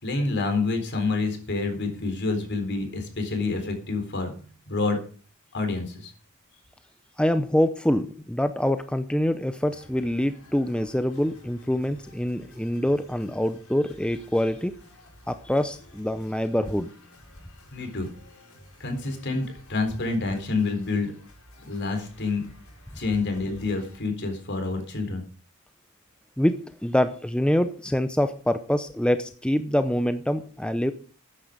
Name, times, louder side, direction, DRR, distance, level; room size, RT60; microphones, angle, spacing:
voice 1, 0.0-4.3 4.7-5.0 5.5-6.1 17.7-18.1 18.8-21.1 21.7-22.4 23.0-25.2, left 3 dB, 55° left, 6 dB, 4.0 m, -28 dB
voice 2, 7.2-14.7 15.3-16.9 26.4-30.9, left 1 dB, 5° left, 10 dB, 0.6 m, -25 dB
sound 1, 9.7-24.0, left 1 dB, 80° left, 7.0 m, -52 dB
13.0 x 9.9 x 5.1 m, 0.39 s
head